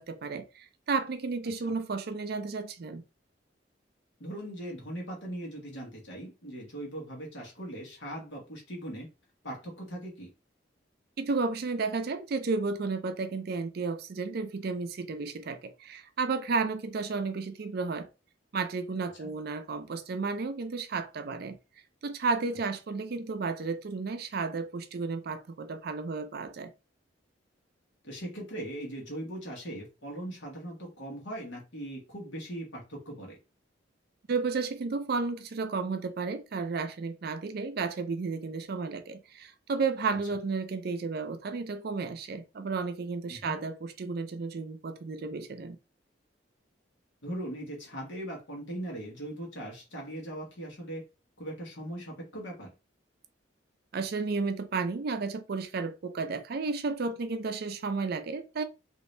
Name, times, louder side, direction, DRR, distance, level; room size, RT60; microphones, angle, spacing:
voice 1, 0.0-3.0 11.2-18.1 18.5-21.6 22.0-26.7 34.3-45.8 53.9-58.6, right 4 dB, 55° right, 0.4 m, -32 dB
voice 2, 4.2-9.1 9.4-10.3 19.2-19.3 28.0-33.4 43.3-43.6 47.2-51.0 51.4-52.7, right 1 dB, 85° left, 1.5 m, -40 dB
3.0 x 2.7 x 3.2 m
head